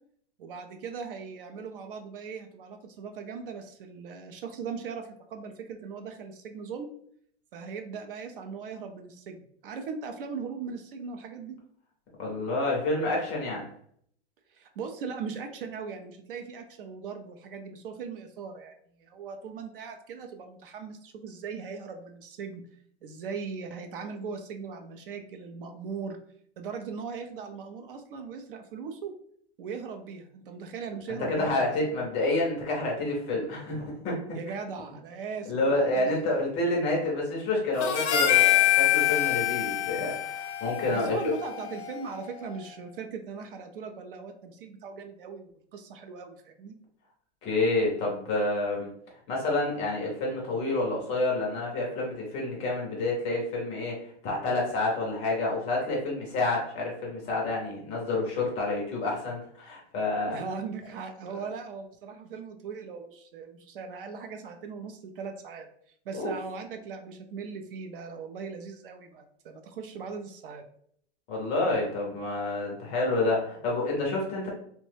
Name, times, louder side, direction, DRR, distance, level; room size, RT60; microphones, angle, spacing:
voice 1, 0.4-6.9 7.5-11.6 14.5-18.7 19.0-22.6 23.0-26.2 26.6-29.1 29.6-31.7 34.3-36.1 40.9-46.8 60.2-70.6, right 5 dB, 55° right, 6 dB, 0.5 m, -39 dB
voice 2, 12.2-13.7 31.2-34.2 35.5-41.3 47.4-48.9 49.3-60.4 66.2-66.3 71.3-74.5, left 2 dB, 20° left, -2 dB, 0.5 m, -28 dB
Harmonica, 37.8-42.3, left 13 dB, 80° left, 0.5 m, -25 dB
3.0 x 2.1 x 3.1 m, 0.65 s
hypercardioid pair, 160°, 33 cm